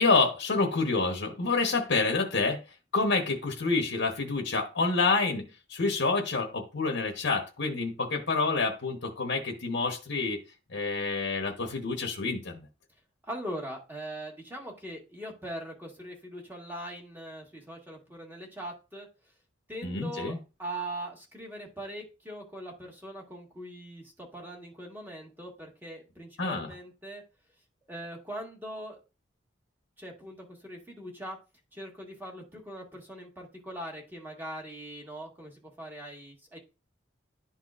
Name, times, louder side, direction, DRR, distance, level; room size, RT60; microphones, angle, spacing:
voice 1, 0.0-2.6 2.9-10.4 10.7-12.7 19.8-20.4 26.4-26.7, left 3 dB, 65° left, 1.1 m, -28 dB
voice 2, 13.2-19.1 19.7-20.3 20.6-27.2 27.9-29.0 30.0-31.4 31.7-36.6, right 1 dB, 10° right, 1.6 m, -41 dB
11.5 x 4.0 x 2.5 m
head